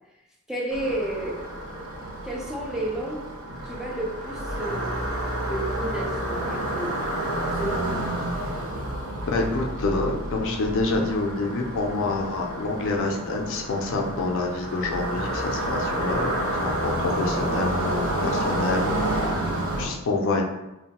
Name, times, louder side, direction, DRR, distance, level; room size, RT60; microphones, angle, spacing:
voice 1, 0.5-1.4 2.2-3.2 3.6-5.1 5.5-6.9 7.5-8.1, right 1 dB, ahead, -3 dB, 0.4 m, -31 dB
sound 1, 0.7-19.8, right 1 dB, 70° right, 0.7 m, -29 dB
voice 2, 9.3-19.2 19.8-20.4, left 3 dB, 60° left, 2 dB, 0.4 m, -27 dB
2.9 x 2.1 x 2.8 m, 0.93 s
head